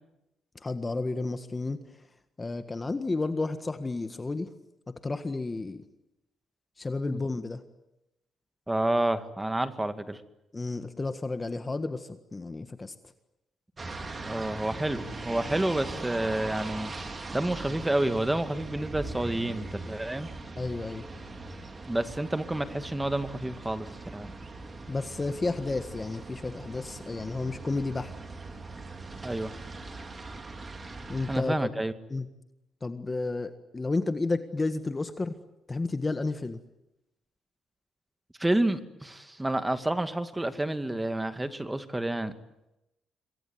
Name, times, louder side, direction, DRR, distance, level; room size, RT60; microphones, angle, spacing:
voice 1, 0.5-1.8 2.4-4.5 4.9-5.8 6.8-7.6 10.5-12.9 20.6-21.1 24.9-28.1 31.1-31.7 32.1-32.3 32.8-35.3 35.7-36.6, left 3 dB, 25° left, 9 dB, 1.7 m, -31 dB
voice 2, 8.7-10.2 14.2-16.9 17.3-20.3 21.9-24.3 29.2-29.5 31.3-31.9 38.4-42.3, right 1 dB, 10° right, 10 dB, 2.2 m, -29 dB
sound 1, 13.8-31.4, right 3 dB, 30° right, 3.9 m, -40 dB
27.0 x 22.0 x 9.6 m, 0.91 s
cardioid pair, 90°, 0 cm